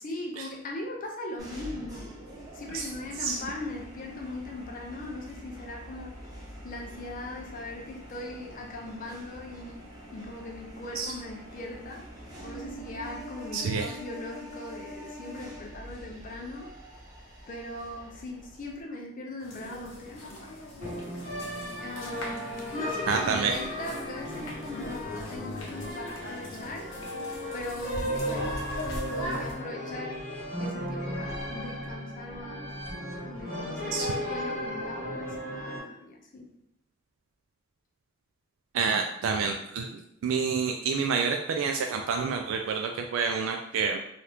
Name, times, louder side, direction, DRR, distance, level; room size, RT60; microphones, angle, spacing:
voice 1, 0.0-2.1 2.5-6.2 6.6-9.8 10.1-12.1 12.4-16.7 17.5-20.6 21.8-26.9 27.5-28.6 29.1-30.2 30.6-32.7 33.2-36.5, left 2 dB, 40° left, 1 dB, 0.5 m, -39 dB
sound 1, 1.4-18.8, equal, 20° right, 0.7 m, -45 dB
voice 2, 13.5-13.9 23.1-23.5 33.9-34.1 38.7-44.0, right 5 dB, 75° right, 3 dB, 0.3 m, -28 dB
sound 2, 19.4-29.5, left 1 dB, 85° left, 0.8 m, -41 dB
sound 3, 20.8-35.8, equal, 40° right, 1.2 m, -35 dB
2.8 x 2.4 x 3.4 m, 0.78 s
head